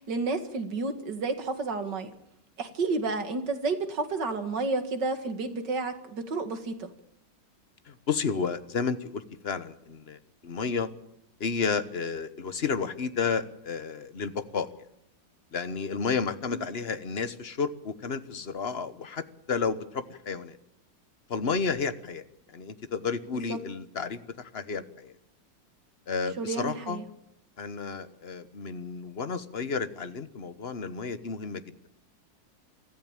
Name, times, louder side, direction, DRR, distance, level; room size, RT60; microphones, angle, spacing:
voice 1, 0.0-2.1 2.6-6.9 16.5-16.6 23.5-23.6 26.4-27.0, right 3 dB, 70° right, 8 dB, 2.6 m, -31 dB
voice 2, 7.9-10.2 10.4-10.9 11.4-14.7 15.5-20.6 21.3-22.2 22.5-25.1 26.1-27.0 27.6-31.6, left 5 dB, 40° left, 12 dB, 1.2 m, -31 dB
24.0 x 14.5 x 8.9 m, 0.77 s
omnidirectional pair, 2.0 m